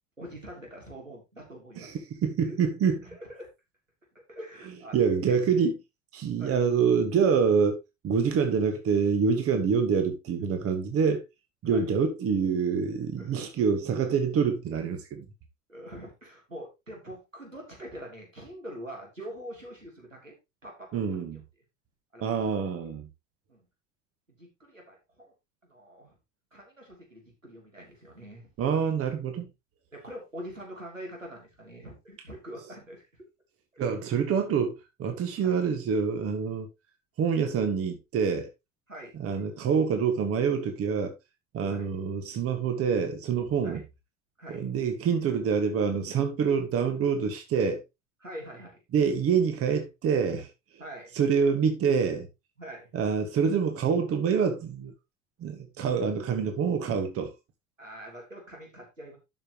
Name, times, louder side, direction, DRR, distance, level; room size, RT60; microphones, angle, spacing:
voice 1, 0.2-2.0 2.4-2.6 3.0-3.5 4.3-5.0 5.3-5.4 6.4-6.6 11.6-11.9 13.2-13.4 15.7-20.4 20.6-21.0 21.3-21.4 22.1-22.3 22.6-22.7 23.5-23.6 24.4-25.3 25.7-26.2 26.5-28.5 29.9-33.0 33.7-33.9 35.4-35.5 38.9-39.2 41.7-41.9 43.6-43.8 44.4-44.7 48.2-48.8 50.8-51.1 52.6-53.0 57.8-59.2, equal, 90° right, 3.3 m, -44 dB
voice 2, 2.2-3.0 4.9-5.7 6.1-7.8 8.0-11.2 11.6-15.3 20.9-21.4 22.2-23.1 28.6-29.5 33.8-36.7 37.2-38.5 39.2-41.1 41.5-43.8 44.5-47.8 48.9-50.5 51.2-52.3 52.9-54.9 55.4-57.3, right 6 dB, 35° right, 1.7 m, -26 dB
12.0 x 5.8 x 3.0 m
figure-of-eight pair, 70°, 37 cm